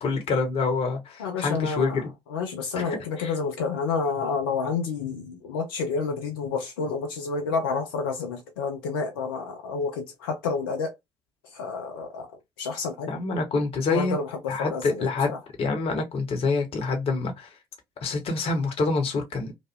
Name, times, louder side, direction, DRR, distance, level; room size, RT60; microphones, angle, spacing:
voice 1, 0.0-2.1 2.8-2.9 3.2-3.3 13.1-14.1 14.5-17.6 18.0-19.5, left 3 dB, 60° left, 1.1 m, -26 dB
voice 2, 1.2-2.0 2.3-10.9 11.5-12.3 12.6-13.1 13.9-15.4, left 5 dB, 85° left, 0.5 m, -29 dB
3.0 x 2.1 x 3.3 m
hypercardioid pair, 45°, 11 cm